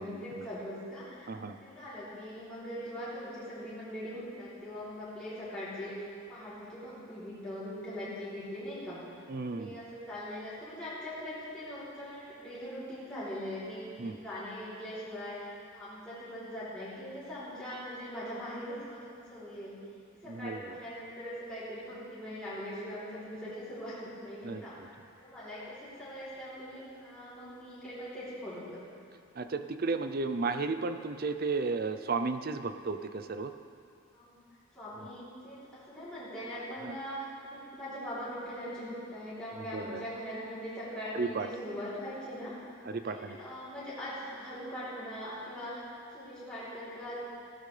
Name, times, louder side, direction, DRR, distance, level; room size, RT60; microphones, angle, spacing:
voice 1, 0.0-9.1 9.5-15.5 15.7-19.8 20.2-24.9 25.2-28.8 34.1-34.4 34.7-42.6 43.0-47.1, equal, 5° left, -13 dB, 3.3 m, -41 dB
voice 2, 9.3-9.8 14.0-14.2 20.3-20.8 24.4-24.9 29.4-33.5 36.8-37.0 39.6-40.0 41.1-41.5 42.8-43.4, right 4 dB, 45° right, 9 dB, 0.5 m, -34 dB
15.5 x 13.0 x 3.3 m, 2.4 s
head